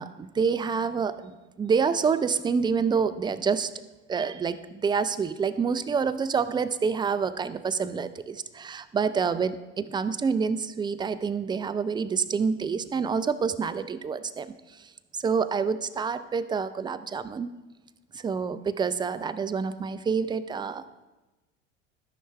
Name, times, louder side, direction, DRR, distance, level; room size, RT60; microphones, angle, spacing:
voice 1, 0.0-1.3 1.6-3.7 4.1-14.5 15.1-17.5 18.2-21.0, right 5 dB, 15° right, 12 dB, 0.4 m, -27 dB
13.5 x 5.9 x 3.2 m, 1.1 s
hypercardioid pair, 75°, 37 cm